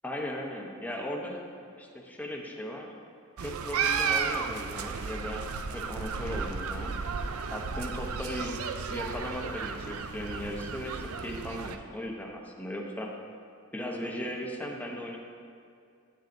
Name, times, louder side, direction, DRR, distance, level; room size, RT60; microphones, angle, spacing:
voice 1, 0.0-1.4 1.8-2.9 3.4-6.9 7.5-8.5 8.9-13.1 13.7-15.2, equal, 10° left, 0 dB, 0.8 m, -37 dB
sound 1, 3.4-11.8, right 5 dB, 80° right, 0.5 m, -33 dB
10.5 x 9.0 x 2.6 m, 2.3 s
head